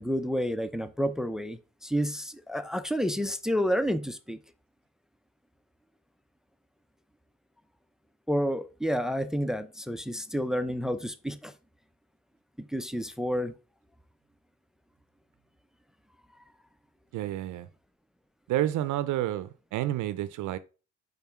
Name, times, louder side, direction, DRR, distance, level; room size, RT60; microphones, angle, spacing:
voice 1, 0.0-4.4 8.3-11.5 12.6-13.5, equal, ahead, 0.5 m, -30 dB
voice 2, 17.1-17.7 18.5-20.6, right 13 dB, 80° right, 0.6 m, -30 dB
5.5 x 4.0 x 5.8 m
cardioid pair, 90°, 30 cm